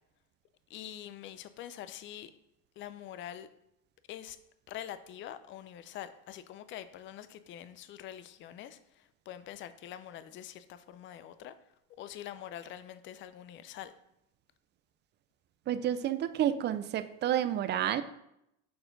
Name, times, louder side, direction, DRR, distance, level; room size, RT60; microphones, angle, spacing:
voice 1, 0.7-2.3 2.8-3.5 4.1-4.4 4.7-11.5 12.0-13.9, left 11 dB, 35° left, 0.4 m, -45 dB
voice 2, 15.7-18.0, right 10 dB, 30° right, 0.4 m, -30 dB
6.7 x 4.3 x 3.9 m
supercardioid pair, 120°, 34 cm